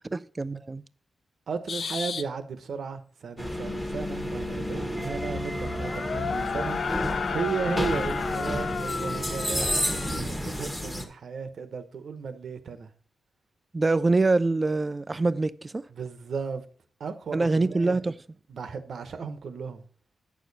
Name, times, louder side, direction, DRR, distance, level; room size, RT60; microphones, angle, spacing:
voice 1, 0.1-0.8 13.7-15.9 17.3-18.2, right 3 dB, 25° right, 0.3 m, -24 dB
voice 2, 1.5-6.8 7.1-12.9 15.9-16.6 17.0-18.0 18.5-19.8, right 5 dB, 65° right, 1.0 m, -35 dB
sound 1, 1.7-2.2 5.2-10.2, left 6 dB, 60° left, 0.4 m, -33 dB
sound 2, 3.4-11.0, left 1 dB, 5° left, 1.2 m, -31 dB
9.1 x 6.6 x 4.1 m
wide cardioid pair, 130°, 0 cm